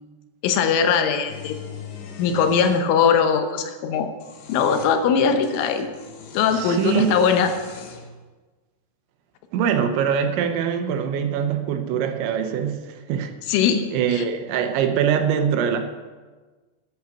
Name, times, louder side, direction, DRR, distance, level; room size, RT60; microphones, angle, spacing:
voice 1, 0.4-1.6 2.2-4.1 4.5-5.9 6.4-7.5 13.5-14.2, left 6 dB, 85° left, 8 dB, 3.5 m, -20 dB
sound 1, 1.3-2.9 4.0-5.0 5.4-8.1, left 7 dB, 70° left, 3.2 m, -40 dB
voice 2, 6.5-7.2 9.5-13.3 13.9-15.8, right 8 dB, 80° right, 7 dB, 3.1 m, -23 dB
9.6 x 9.2 x 7.2 m, 1.3 s
omnidirectional pair, 5.5 m